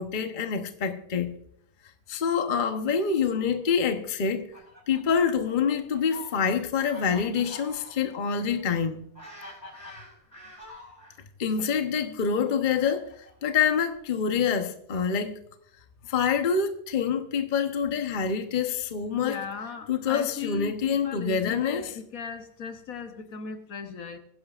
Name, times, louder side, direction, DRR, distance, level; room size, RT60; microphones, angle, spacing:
voice 1, 0.0-1.3 2.1-4.5 4.9-9.1 11.4-15.4 16.1-19.4 19.9-22.0, left 6 dB, 35° left, 0.9 m, -26 dB
Fowl, 4.2-11.2 12.0-14.0, left 2 dB, 10° left, 5.2 m, -47 dB
voice 2, 19.2-24.2, left 6 dB, 60° left, 1.3 m, -38 dB
22.0 x 10.5 x 2.4 m
omnidirectional pair, 1.7 m